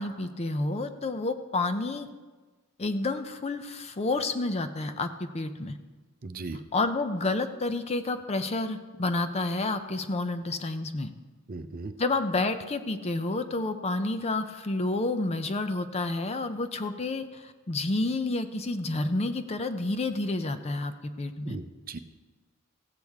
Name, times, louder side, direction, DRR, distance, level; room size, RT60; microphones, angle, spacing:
voice 1, 0.0-2.1 2.8-5.8 6.7-11.1 12.0-21.6, left 2 dB, 30° left, 9 dB, 0.6 m, -30 dB
voice 2, 6.2-6.6 11.5-11.9 21.5-22.0, right 3 dB, 45° right, 9 dB, 0.6 m, -37 dB
15.5 x 8.2 x 3.5 m, 1.3 s
head